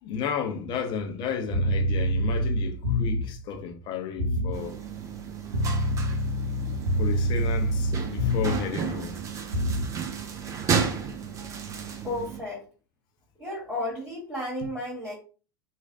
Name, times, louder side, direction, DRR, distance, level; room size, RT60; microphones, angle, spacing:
voice 1, 0.0-4.7 7.0-9.2, left 6 dB, 35° left, 0.6 m, -32 dB
sound 1, 1.5-3.4 4.2-4.6 5.5-8.7 9.5-9.9, equal, 90° right, 0.7 m, -26 dB
sound 2, 4.5-12.4, right 6 dB, 25° right, 0.5 m, -33 dB
voice 2, 12.0-12.7 13.4-15.2, left 1 dB, 5° right, 1.6 m, -33 dB
3.1 x 2.4 x 2.6 m
figure-of-eight pair, 85°, 13 cm